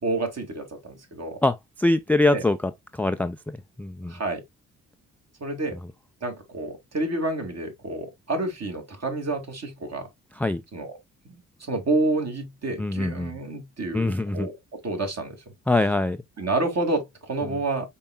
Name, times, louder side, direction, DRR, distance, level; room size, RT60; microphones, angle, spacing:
voice 1, 0.0-1.4 2.3-2.4 4.0-4.4 5.4-5.8 6.2-10.1 10.7-11.0 11.3-14.5 14.8-15.4 16.4-17.9, right 2 dB, 40° right, 2.3 m, -29 dB
voice 2, 1.4-2.6 2.9-4.1 10.4-10.6 12.8-13.4 13.9-14.5 15.7-16.2, left 2 dB, 5° left, 0.3 m, -23 dB
5.3 x 4.5 x 2.2 m
hypercardioid pair, 45°, 39 cm